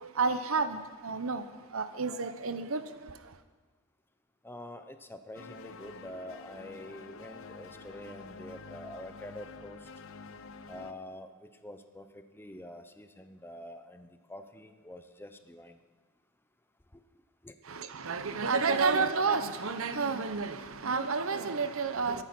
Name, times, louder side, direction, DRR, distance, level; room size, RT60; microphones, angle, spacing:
voice 1, 0.0-1.4 1.7-3.1 17.7-22.2, right 4 dB, 70° right, 0.9 m, -30 dB
voice 2, 4.4-9.8 10.7-11.3 11.6-12.1 12.3-15.7 17.4-17.5, left 1 dB, 10° left, 0.8 m, -46 dB
sound 1, 5.3-10.9, left 4 dB, 70° left, 0.8 m, -48 dB
22.0 x 9.8 x 6.0 m
head